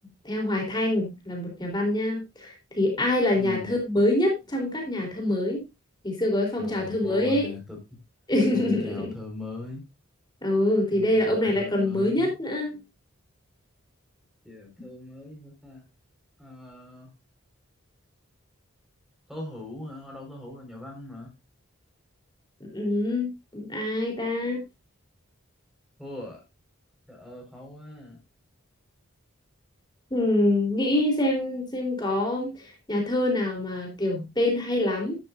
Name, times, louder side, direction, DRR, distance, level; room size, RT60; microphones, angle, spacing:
voice 1, 0.2-5.6 6.0-7.5 8.3-9.1 10.4-12.8 22.6-24.6 30.1-32.6 32.9-35.2, left 1 dB, 20° left, 3.7 m, -25 dB
voice 2, 3.3-3.7 6.6-7.8 8.5-9.8 10.9-12.3 14.4-15.8 16.4-17.1 19.3-21.3 26.0-26.4 27.1-28.2, left 2 dB, ahead, 4.8 m, -40 dB
11.5 x 11.5 x 2.6 m
head